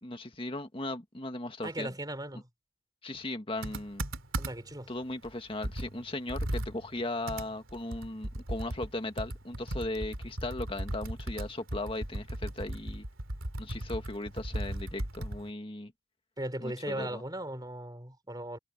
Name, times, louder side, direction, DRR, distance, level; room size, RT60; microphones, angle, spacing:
voice 1, 0.0-1.9 3.0-4.0 4.9-13.1 13.6-15.9 16.6-17.2, left 2 dB, 25° left, 1.9 m, -37 dB
voice 2, 1.6-2.5 4.4-4.9 16.4-18.6, right 1 dB, 20° right, 4.7 m, -37 dB
Computer keyboard, 3.6-4.8 5.2-5.3 5.6-15.5, right 1 dB, 90° right, 3.2 m, -37 dB
head